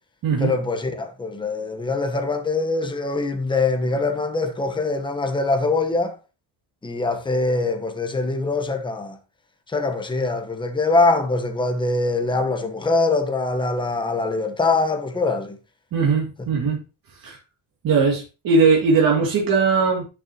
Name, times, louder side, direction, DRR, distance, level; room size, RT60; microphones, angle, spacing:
voice 1, 0.4-6.2 6.8-9.2 9.7-15.6 16.4-16.5, left 3 dB, 10° left, 1.0 m, -23 dB
voice 2, 15.9-16.8 17.2-17.4 17.8-20.1, right 4 dB, 55° right, 2.2 m, -19 dB
10.5 x 6.1 x 2.8 m
cardioid pair, 175°, 40 cm